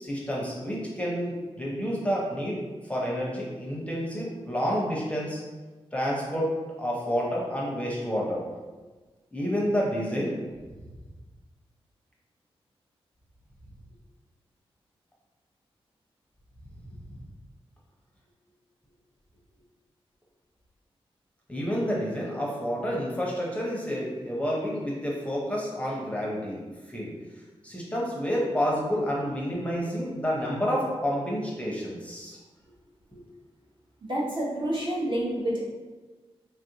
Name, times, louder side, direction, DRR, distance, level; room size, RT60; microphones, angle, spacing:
voice 1, 0.0-2.6 2.9-5.4 5.9-6.5 6.8-8.4 9.3-10.4 21.5-26.6 26.9-27.1 27.6-32.4 33.1-33.2, equal, 15° left, -4 dB, 0.6 m, -29 dB
voice 2, 34.0-35.6, right 1 dB, 50° right, -6 dB, 1.0 m, -28 dB
3.2 x 2.4 x 2.8 m, 1.3 s
wide cardioid pair, 100°, 10 cm